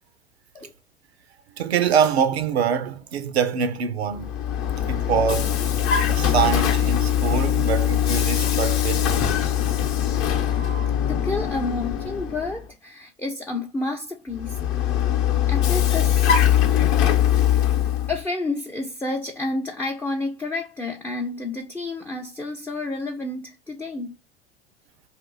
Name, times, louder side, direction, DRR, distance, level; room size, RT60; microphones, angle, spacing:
voice 1, 1.6-4.3 4.9-5.6 6.1-9.3, right 7 dB, 85° right, 0.6 m, -24 dB
Vehicle, 4.1-12.6 14.3-18.2, left 10 dB, 45° left, 0.7 m, -22 dB
voice 2, 11.1-14.6 15.5-16.4 18.1-24.2, left 2 dB, 5° left, 0.3 m, -30 dB
2.6 x 2.5 x 3.7 m
hypercardioid pair, 80°, 31 cm